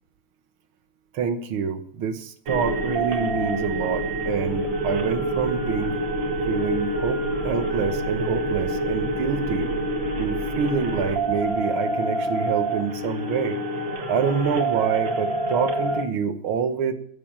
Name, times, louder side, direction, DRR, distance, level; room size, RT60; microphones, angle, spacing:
voice 1, 1.1-6.0 6.5-9.7 10.2-13.6 14.1-16.9, right 6 dB, 90° right, 9 dB, 2.0 m, -27 dB
sound 1, 2.5-16.0, right 1 dB, 65° right, 2.3 m, -27 dB
15.0 x 7.6 x 7.3 m, 0.65 s
omnidirectional pair, 2.2 m